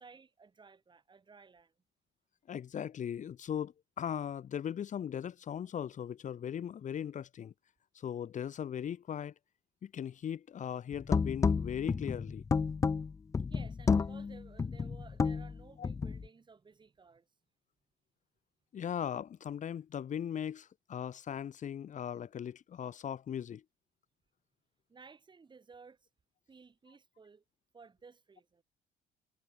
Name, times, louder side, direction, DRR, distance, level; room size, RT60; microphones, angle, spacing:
voice 1, 0.0-1.7 13.4-17.3 24.9-26.1 26.5-27.4 27.7-28.6, right 5 dB, 25° right, 4.9 m, -56 dB
voice 2, 2.5-7.5 7.9-9.3 9.8-12.4 15.8-15.9 18.7-23.6, left 9 dB, 45° left, 2.0 m, -38 dB
sound 1, 10.9-16.3, left 5 dB, 20° left, 0.4 m, -31 dB
cardioid pair, 110°, 17 cm